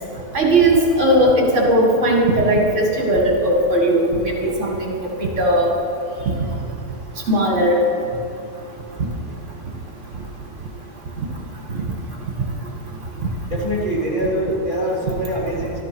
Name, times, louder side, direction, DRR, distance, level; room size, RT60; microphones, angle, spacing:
voice 1, 0.3-4.9 5.2-5.7 7.3-7.8, right 1 dB, 50° right, 0 dB, 2.2 m, -17 dB
voice 2, 13.4-15.8, equal, 30° left, -5 dB, 3.3 m, -24 dB
14.0 x 12.5 x 6.1 m, 2.7 s
omnidirectional pair, 1.6 m